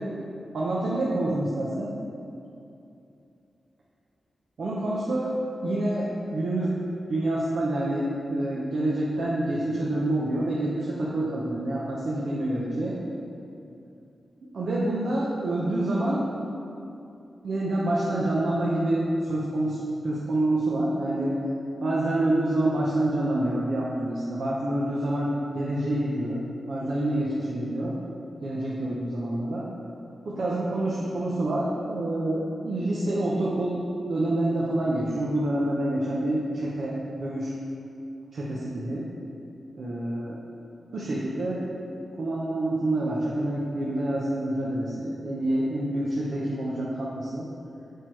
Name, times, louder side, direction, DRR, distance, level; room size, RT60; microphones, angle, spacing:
voice 1, 0.5-1.9 4.6-5.3 5.6-6.8 7.1-13.0 14.5-16.3 17.4-19.8 20.0-21.3 21.8-26.4 26.7-27.9 28.4-29.7 30.2-33.8 34.1-37.5 38.3-39.1 39.8-40.4 40.9-41.6 42.2-47.5, right 1 dB, 70° right, -6 dB, 0.9 m, -27 dB
6.6 x 4.6 x 4.6 m, 2.7 s
cardioid pair, 60°, 0 cm